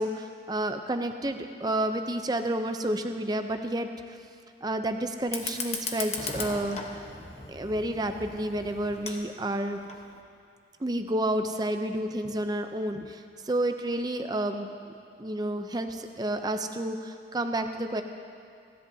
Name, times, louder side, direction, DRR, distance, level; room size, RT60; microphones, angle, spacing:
voice 1, 0.0-4.2 4.6-6.8 7.5-9.8 10.8-14.7 15.2-18.0, right 1 dB, 20° right, 6 dB, 0.5 m, -30 dB
Fire, 5.2-10.2, left 4 dB, 35° left, 1.0 m, -38 dB
29.0 x 11.0 x 2.7 m, 2.3 s
head